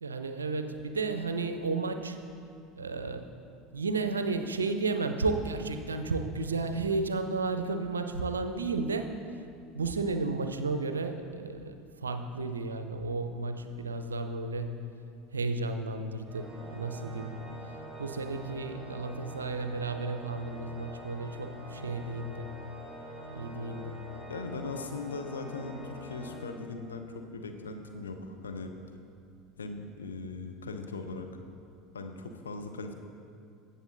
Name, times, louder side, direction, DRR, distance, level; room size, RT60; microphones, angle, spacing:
voice 1, 0.0-2.2 2.8-3.3 3.7-9.2 9.7-14.8 15.3-17.4 18.0-22.5 23.3-24.0, right 3 dB, 75° right, 8 dB, 0.4 m, -33 dB
Organ, 16.3-27.1, left 1 dB, 20° right, 1.6 m, -45 dB
voice 2, 24.3-28.8 29.6-31.3 31.9-32.9, left 3 dB, 75° left, 5 dB, 0.6 m, -39 dB
16.0 x 6.6 x 2.6 m, 2.5 s
figure-of-eight pair, 70°, 0 cm